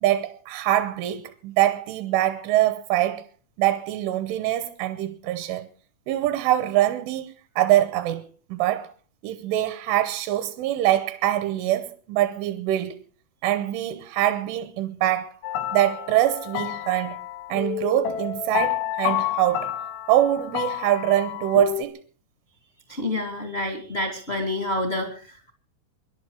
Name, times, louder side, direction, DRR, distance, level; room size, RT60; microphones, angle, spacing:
voice 1, 0.0-3.2 3.6-5.7 6.1-8.9 9.2-13.0 13.4-15.4 15.7-17.2 17.5-19.7 20.1-22.0, right 13 dB, 80° right, 3.3 m, -24 dB
sound 1, 15.4-21.8, left 12 dB, 85° left, 4.1 m, -29 dB
voice 2, 22.9-25.5, left 1 dB, 70° left, 0.6 m, -28 dB
25.5 x 11.5 x 4.8 m
omnidirectional pair, 5.7 m